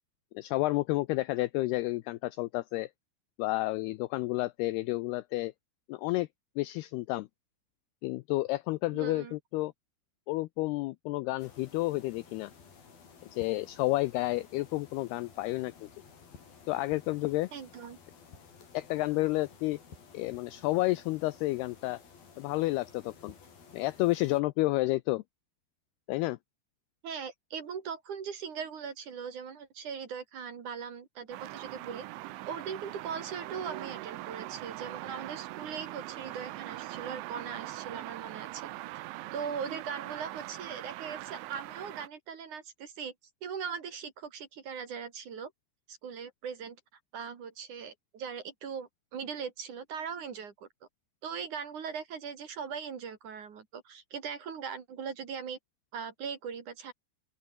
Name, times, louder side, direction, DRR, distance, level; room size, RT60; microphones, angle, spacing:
voice 1, 0.3-2.9 3.4-5.5 5.9-6.3 6.6-7.3 8.0-9.7 10.3-12.5 13.3-15.9 16.7-17.5 18.7-19.8 20.1-22.0 22.4-23.4 23.7-25.2 26.1-26.4, left 19 dB, 85° left, 2.3 m, -30 dB
voice 2, 8.9-9.4 17.5-18.0 27.0-32.0 32.5-38.7 39.3-43.1 43.4-45.5 45.9-46.8 47.1-50.7 51.2-55.6 55.9-56.9, right 6 dB, 50° right, 3.3 m, -40 dB
sound 1, 11.4-24.4, left 5 dB, 55° left, 6.5 m, -54 dB
sound 2, 31.3-42.1, right 18 dB, 90° right, 3.4 m, -42 dB
open air
omnidirectional pair, 5.3 m